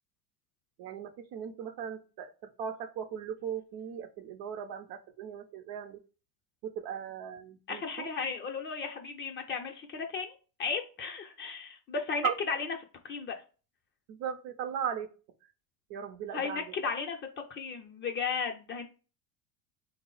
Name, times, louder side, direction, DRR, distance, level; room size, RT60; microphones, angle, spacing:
voice 1, 0.8-2.3 2.6-6.0 6.6-8.1 12.2-12.3 14.1-15.1 15.9-16.6, right 8 dB, 50° right, 9 dB, 0.6 m, -37 dB
voice 2, 7.7-10.3 10.6-12.8 13.0-13.3 16.3-17.2 17.5-18.9, left 5 dB, 25° left, 2 dB, 0.5 m, -35 dB
3.4 x 2.0 x 3.8 m, 0.35 s
supercardioid pair, 115°, 47 cm